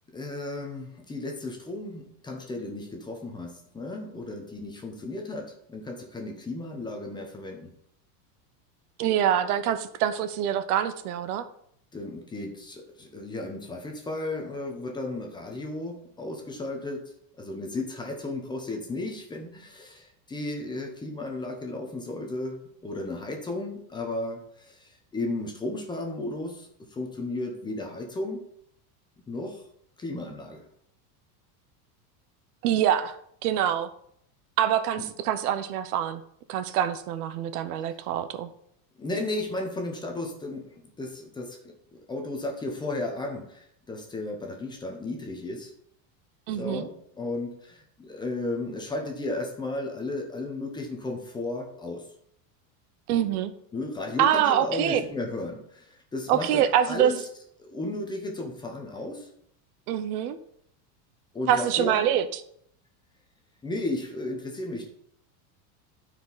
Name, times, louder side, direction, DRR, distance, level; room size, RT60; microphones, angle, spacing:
voice 1, 0.1-7.7 11.9-17.0 17.4-28.4 29.3-29.6 30.0-30.6 35.0-35.1 39.0-40.7 41.0-43.6 43.9-45.7 46.6-52.0 53.7-57.2 57.6-59.3 61.3-62.0 63.6-64.9, left 2 dB, 10° left, 2 dB, 0.9 m, -34 dB
voice 2, 9.0-11.5 32.6-33.2 33.4-33.9 34.6-36.2 36.5-38.5 46.5-46.9 53.1-53.5 54.2-55.0 56.3-57.1 59.9-60.4 61.5-62.4, right 10 dB, 70° right, 12 dB, 0.9 m, -25 dB
12.5 x 4.7 x 4.0 m, 0.69 s
supercardioid pair, 170°, 46 cm